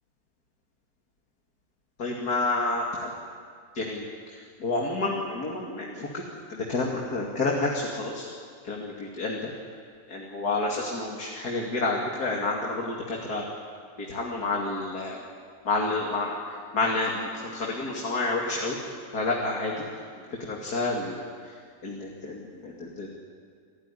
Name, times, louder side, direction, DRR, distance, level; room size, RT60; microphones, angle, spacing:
voice 1, 2.0-3.1 3.7-4.0 4.6-6.2 6.5-8.3 8.6-9.5 10.1-13.4 14.0-15.2 15.7-18.8 19.1-19.9 20.3-21.3 21.8-23.1, left 3 dB, 60° left, -1 dB, 2.9 m, -29 dB
28.0 x 15.5 x 9.9 m, 2.1 s
omnidirectional pair, 1.9 m